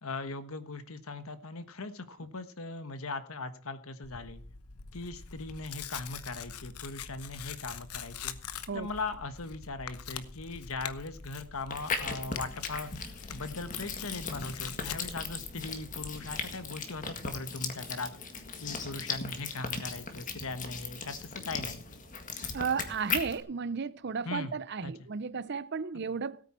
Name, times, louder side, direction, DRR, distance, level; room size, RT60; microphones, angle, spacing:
voice 1, 0.0-4.4 4.9-8.4 8.7-12.9 13.3-21.8 24.2-24.6 24.8-24.9, left 3 dB, 70° left, 1.3 m, -39 dB
Tearing, 4.0-16.4, left 7 dB, 85° left, 1.0 m, -44 dB
sound 1, 11.7-23.4, left 5 dB, 35° left, 1.8 m, -38 dB
voice 2, 22.5-26.4, right 5 dB, 50° right, 0.5 m, -34 dB
17.0 x 9.2 x 4.4 m
head